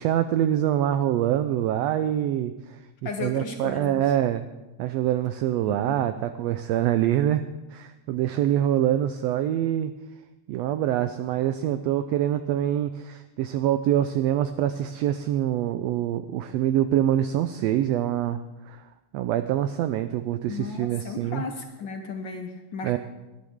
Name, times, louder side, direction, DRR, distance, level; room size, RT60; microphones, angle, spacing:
voice 1, 0.0-2.8 3.2-4.4 4.8-7.4 7.7-9.9 10.5-18.4 18.7-18.8 19.1-21.4 22.8-23.0, right 11 dB, 80° right, 10 dB, 1.5 m, -25 dB
voice 2, 3.0-4.0 5.7-6.0 20.5-23.0, left 4 dB, 65° left, 4 dB, 1.1 m, -35 dB
19.0 x 11.5 x 3.6 m, 1.1 s
omnidirectional pair, 3.4 m